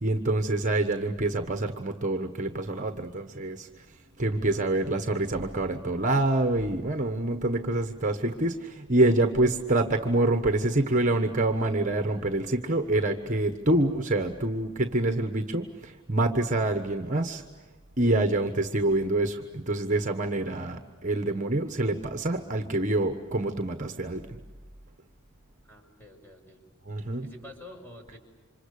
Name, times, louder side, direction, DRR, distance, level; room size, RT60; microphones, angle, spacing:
voice 1, 0.0-3.7 4.2-17.4 18.0-24.4 26.9-27.3, right 2 dB, 35° right, 6 dB, 1.3 m, -26 dB
voice 2, 4.4-5.1 25.6-26.6 27.2-28.2, left 1 dB, 10° left, 2 dB, 5.4 m, -49 dB
29.0 x 26.5 x 6.7 m, 1.3 s
head